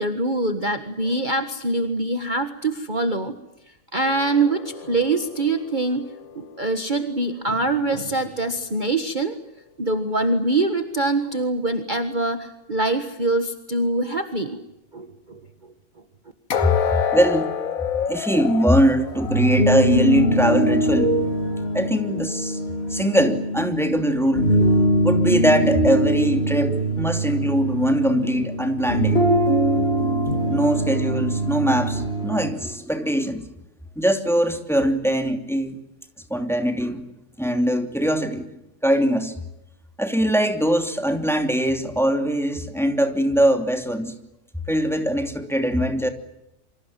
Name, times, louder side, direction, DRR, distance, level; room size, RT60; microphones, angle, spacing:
voice 1, 0.0-3.3 3.9-6.0 6.3-9.3 9.8-14.6 14.9-15.4, right 2 dB, 30° right, 7 dB, 1.7 m, -24 dB
sound 1, 4.0-7.2 16.5-20.4 20.8-21.0 21.6-21.7, left 7 dB, 60° left, 1.6 m, -29 dB
voice 2, 16.6-17.5 18.1-21.2 21.7-22.6 22.9-24.6 25.0-29.2 30.5-33.5 34.0-35.8 36.3-37.1 37.4-38.5 38.8-39.3 40.0-44.2 44.7-46.1, equal, ahead, 5 dB, 2.8 m, -21 dB
sound 2, 19.1-32.5, right 1 dB, 40° left, 4.0 m, -22 dB
28.0 x 25.5 x 7.6 m, 0.88 s
omnidirectional pair, 1.7 m